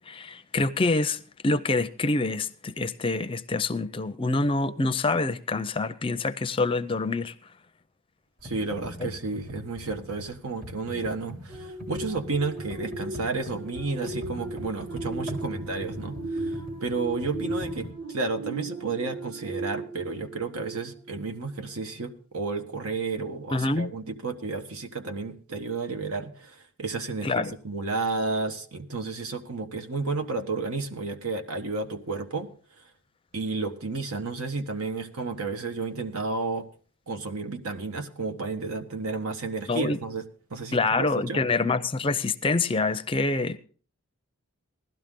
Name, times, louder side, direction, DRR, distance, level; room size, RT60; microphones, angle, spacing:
voice 1, 0.1-7.3 9.0-9.1 23.5-23.9 27.2-27.5 39.7-40.0 40.7-43.6, left 3 dB, 25° left, 0.5 m, -26 dB
Computer keyboard, 8.4-17.9, left 1 dB, 40° right, 2.6 m, -41 dB
voice 2, 8.4-32.5 33.3-36.7 37.1-41.4, right 3 dB, 80° right, 1.3 m, -32 dB
sound 1, 11.5-21.4 21.8-22.0, right 2 dB, 60° right, 2.8 m, -37 dB
16.5 x 12.0 x 3.7 m
head